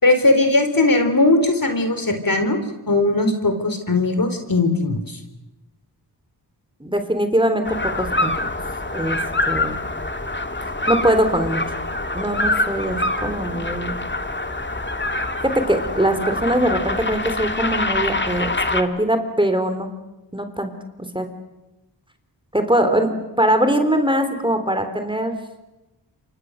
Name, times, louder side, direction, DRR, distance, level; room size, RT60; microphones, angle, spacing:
voice 1, 0.0-2.6 2.9-5.2, left 2 dB, 50° left, 7 dB, 4.2 m, -18 dB
voice 2, 6.8-8.3 8.9-9.2 9.5-9.8 10.9-11.6 12.1-14.0 15.4-19.9 20.3-20.7 21.1-21.3 22.5-25.4, right 1 dB, 10° right, 7 dB, 3.7 m, -21 dB
sound 1, 7.6-18.8, left 2 dB, 25° left, 2.3 m, -25 dB
28.5 x 24.5 x 6.6 m, 1.0 s
cardioid pair, 50°, 43 cm